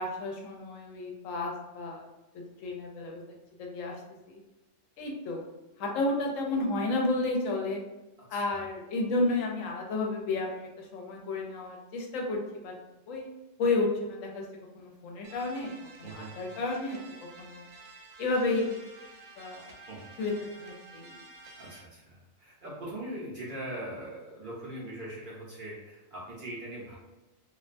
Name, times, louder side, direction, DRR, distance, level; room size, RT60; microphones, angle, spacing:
voice 1, 0.0-2.1 2.3-3.2 3.6-4.0 4.3-4.4 5.0-5.5 5.8-7.8 8.3-12.7 13.1-13.3 13.6-14.4 14.7-15.7 16.0-17.0 17.4-17.6 18.2-18.8 19.4-19.6 20.2-20.3 20.6-21.2, left 2 dB, 75° left, 0 dB, 0.9 m, -31 dB
voice 2, 8.2-8.6 16.0-16.3 19.9-20.1 21.6-27.0, right 1 dB, 55° right, -7 dB, 0.6 m, -41 dB
sound 1, 15.2-21.8, right 3 dB, 75° right, 1.0 m, -51 dB
2.5 x 2.1 x 2.5 m, 1.0 s
omnidirectional pair, 1.4 m